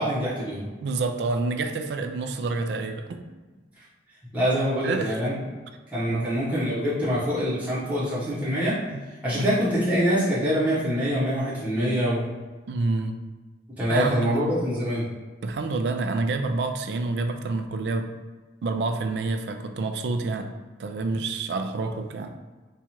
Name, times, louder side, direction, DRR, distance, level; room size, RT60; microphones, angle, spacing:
voice 1, 0.0-0.7 3.8-3.9 4.3-5.3 5.9-8.8 9.2-12.3 13.8-15.1, equal, 10° right, -11 dB, 0.9 m, -25 dB
voice 2, 0.8-3.3 4.8-5.2 6.1-6.3 8.9-9.0 9.3-9.4 12.7-13.2 13.9-14.4 15.4-18.1 18.6-20.5 20.8-22.3, right 3 dB, 70° right, 7 dB, 0.3 m, -28 dB
2.9 x 2.3 x 4.2 m, 1.3 s
head